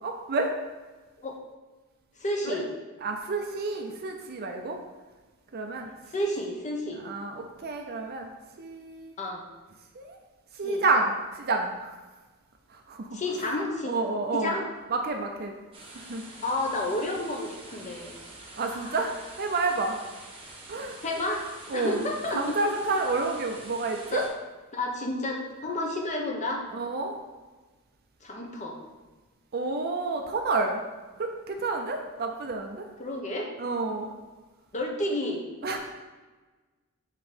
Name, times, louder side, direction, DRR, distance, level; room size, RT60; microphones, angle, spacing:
voice 1, 0.0-0.5 2.4-2.6 3.0-4.8 5.5-5.9 7.0-8.3 8.6-9.1 9.9-10.2 10.6-12.0 12.7-13.2 13.9-14.5 14.9-15.5 15.9-16.3 18.6-20.0 20.7-21.0 21.7-22.0 22.3-24.2 26.7-27.1 29.5-30.8 31.2-32.9 33.6-34.1 35.6-35.8, right 3 dB, 45° right, 3 dB, 0.5 m, -29 dB
voice 2, 2.2-2.7 6.1-7.0 9.2-9.4 10.6-10.8 13.1-14.0 14.3-14.7 16.4-18.2 18.7-19.0 21.0-21.5 21.7-22.6 24.1-24.3 24.7-26.6 28.2-28.8 33.0-33.5 34.7-35.4, left 1 dB, 30° left, 1 dB, 0.9 m, -31 dB
sound 1, 15.7-24.3, right 2 dB, 25° right, 1.2 m, -46 dB
7.4 x 2.9 x 5.1 m, 1.3 s
head